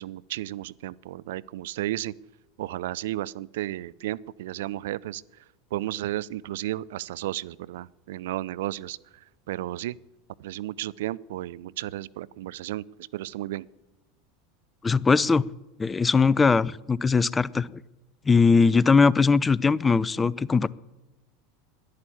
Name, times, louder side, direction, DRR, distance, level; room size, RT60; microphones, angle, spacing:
voice 1, 0.0-2.1 2.6-5.4 5.7-10.0 10.4-13.7, right 15 dB, 70° right, 21 dB, 0.4 m, -33 dB
voice 2, 14.8-15.4 15.8-17.8 18.3-20.7, left 4 dB, 20° left, 22 dB, 0.4 m, -20 dB
11.5 x 10.5 x 8.5 m, 1.0 s
hypercardioid pair, 85°, 0 cm